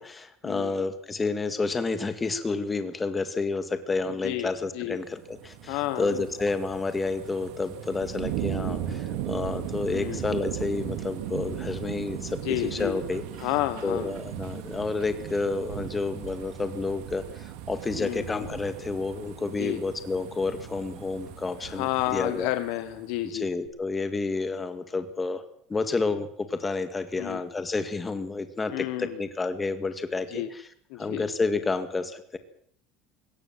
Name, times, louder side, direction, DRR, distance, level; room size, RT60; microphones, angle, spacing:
voice 1, 0.0-13.2 13.8-22.5 23.3-25.4 25.7-30.7 31.0-32.4, left 3 dB, 15° left, 9 dB, 2.0 m, -30 dB
sound 1, 5.1-23.2 23.7-23.8, right 10 dB, 80° right, 3.0 m, -37 dB
voice 2, 5.7-6.2 9.9-10.2 12.4-13.0 13.4-14.1 18.0-18.3 19.6-19.8 21.7-23.5 27.2-27.4 28.7-29.1 30.3-30.5 30.9-31.2, left 16 dB, 70° left, 10 dB, 1.3 m, -30 dB
21.5 x 18.5 x 7.5 m, 0.65 s
cardioid pair, 150°, 0 cm